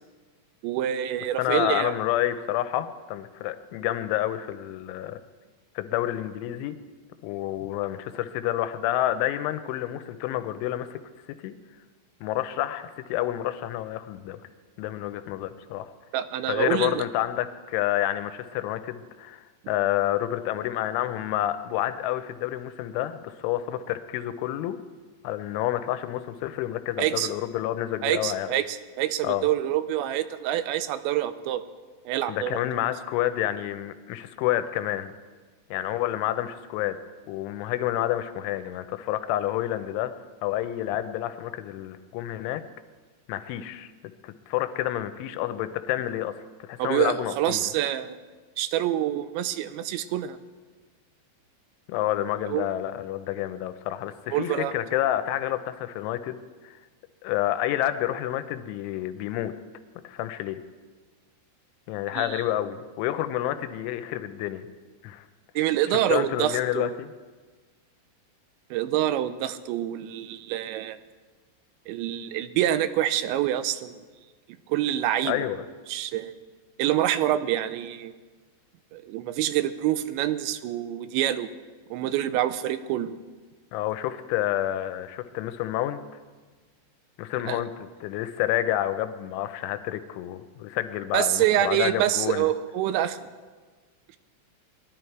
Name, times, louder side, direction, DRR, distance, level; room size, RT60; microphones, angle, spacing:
voice 1, 0.6-2.0 16.1-17.0 27.0-27.3 28.0-31.6 32.1-32.6 46.8-48.2 48.6-50.4 52.5-52.7 54.3-54.7 62.1-62.4 65.6-67.0 68.7-71.0 71.9-74.0 74.7-75.5 75.9-76.4 76.8-78.1 78.9-81.5 81.9-83.2 87.5-87.6 91.1-93.2, right 12 dB, 80° right, 12 dB, 2.8 m, -26 dB
voice 2, 1.4-5.2 5.8-6.8 7.2-11.0 11.3-11.5 12.2-14.4 14.8-15.9 16.5-24.8 25.2-28.5 29.2-29.5 32.3-35.1 35.7-37.0 37.3-40.1 40.4-42.6 43.3-43.9 44.2-46.3 46.7-47.7 51.9-56.4 56.6-56.8 57.2-59.5 60.0-60.6 61.9-64.7 65.0-65.3 66.1-67.1 75.2-75.7 83.7-86.0 87.2-92.5, left 13 dB, 90° left, 11 dB, 3.0 m, -29 dB
19.0 x 11.5 x 4.6 m, 1.4 s
omnidirectional pair, 5.5 m